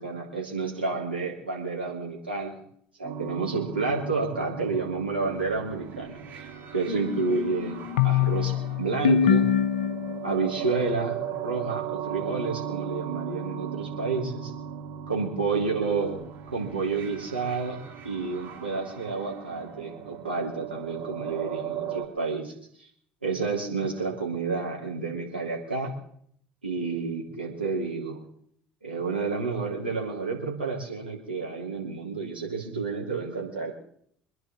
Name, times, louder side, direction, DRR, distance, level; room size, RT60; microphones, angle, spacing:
voice 1, 0.0-2.6 3.0-6.5 6.7-7.8 8.0-9.4 10.2-14.5 15.1-16.2 16.5-22.5 22.8-22.9 23.2-25.9 26.6-28.2 28.8-33.7, right 4 dB, 85° right, -3 dB, 3.6 m, -30 dB
sound 1, 3.0-22.1, right 9 dB, 50° right, 3.2 m, -38 dB
sound 2, 6.9-10.5, left 8 dB, 70° left, 0.6 m, -25 dB
26.0 x 10.5 x 3.9 m, 0.65 s
figure-of-eight pair, 60°, 5 cm